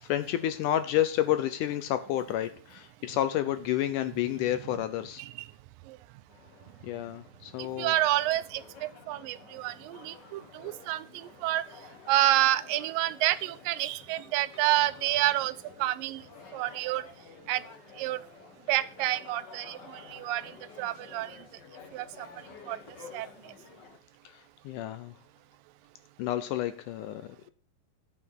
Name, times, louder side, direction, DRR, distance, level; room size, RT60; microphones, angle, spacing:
voice 1, 0.0-5.2 6.8-8.0 10.6-10.8 24.3-25.1 26.2-27.5, left 12 dB, 75° left, 11 dB, 2.1 m, -30 dB
sound 1, 6.3-24.0, left 5 dB, 55° left, 1.2 m, -51 dB
voice 2, 7.8-11.6 12.1-15.5 15.8-16.2 16.5-17.1 17.5-17.6 18.0-18.2 18.7-20.4 20.8-21.3 21.9-22.3 22.7-22.8 23.1-23.3, right 15 dB, 80° right, 15 dB, 2.3 m, -28 dB
11.0 x 5.7 x 6.7 m, 0.42 s
omnidirectional pair, 4.0 m